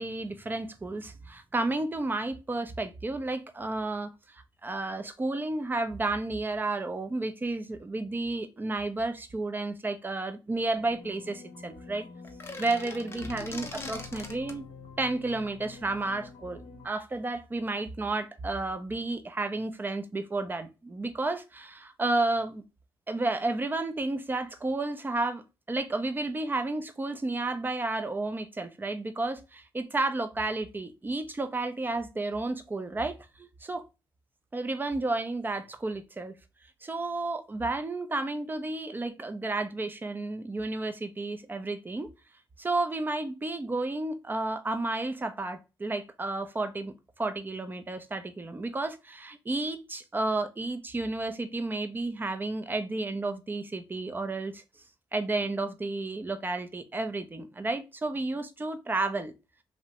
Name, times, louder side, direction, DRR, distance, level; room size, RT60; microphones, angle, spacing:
voice 1, 0.0-12.1 12.6-14.6 15.0-22.6 23.1-25.4 25.7-33.8 34.5-36.3 36.8-42.1 42.6-54.6 55.1-59.3, right 2 dB, 20° right, 0.5 m, -32 dB
sound 1, 10.7-16.9, left 5 dB, 70° left, 0.7 m, -47 dB
sound 2, 12.2-14.6, left 3 dB, 25° left, 0.6 m, -42 dB
2.5 x 2.1 x 2.8 m
supercardioid pair, 65°, 9 cm